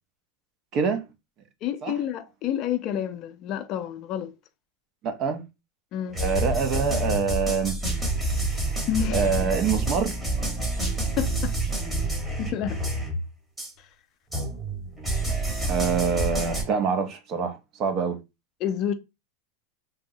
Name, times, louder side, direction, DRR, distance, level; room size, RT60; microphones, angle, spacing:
voice 1, 0.7-1.1 1.8-1.9 5.0-5.4 6.1-7.8 9.1-10.2 15.7-18.2, right 5 dB, 45° right, 0.7 m, -25 dB
voice 2, 1.6-4.3 5.9-6.2 8.9-9.3 11.2-11.5 12.4-12.8 18.6-18.9, left 10 dB, 45° left, 0.4 m, -29 dB
sound 1, 6.1-13.3 13.6-13.7 14.3-16.6, right 2 dB, 10° right, 1.3 m, -28 dB
3.5 x 2.0 x 2.7 m
hypercardioid pair, 115°, 0 cm